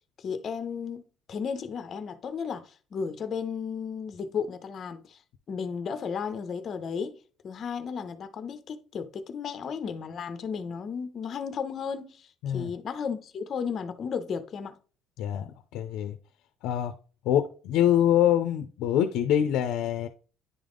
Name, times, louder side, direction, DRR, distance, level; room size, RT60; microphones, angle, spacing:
voice 1, 0.2-5.2 5.5-7.2 7.4-14.8, left 6 dB, 35° left, 0.6 m, -34 dB
voice 2, 15.2-16.2 16.6-16.9 17.2-20.1, left 10 dB, 90° left, 0.5 m, -25 dB
9.8 x 3.7 x 3.5 m
cardioid pair, 170°, 0 cm